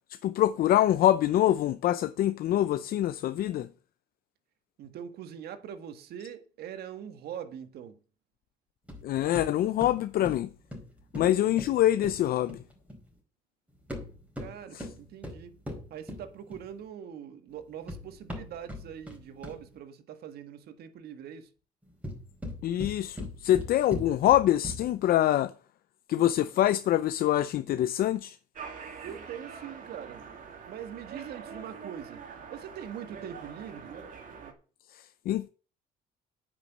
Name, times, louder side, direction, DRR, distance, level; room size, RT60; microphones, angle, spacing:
voice 1, 0.2-3.7 9.0-10.5 11.1-12.6 14.7-14.8 22.6-25.5 26.1-28.4 34.9-35.5, left 12 dB, 60° left, 0.6 m, -25 dB
voice 2, 4.8-8.0 14.4-15.6 15.9-21.5 29.0-30.3 30.7-33.9, right 9 dB, 70° right, 1.7 m, -42 dB
sound 1, 8.9-13.1 13.8-16.8 17.6-19.8 21.8-25.1, left 1 dB, 10° right, 4.7 m, -41 dB
sound 2, 28.5-34.5, right 6 dB, 55° right, 2.5 m, -44 dB
9.5 x 6.2 x 7.9 m
cardioid pair, 110°, 17 cm